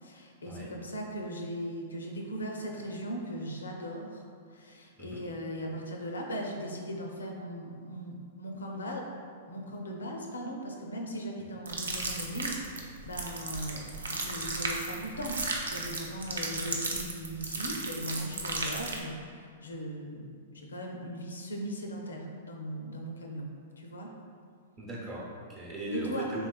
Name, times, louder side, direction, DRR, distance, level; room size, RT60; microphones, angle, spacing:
voice 1, 0.0-4.3 4.5-9.0 9.5-13.8 14.1-15.4 15.7-19.1 19.6-23.5 23.8-24.1 25.9-26.3, equal, 85° left, 1 dB, 0.4 m, -38 dB
sound 1, 11.7-19.0, right 3 dB, 85° right, 0.4 m, -35 dB
voice 2, 24.8-26.5, right 1 dB, 30° right, -4 dB, 0.8 m, -38 dB
3.1 x 3.0 x 2.3 m, 2.2 s
hypercardioid pair, 115°, 0 cm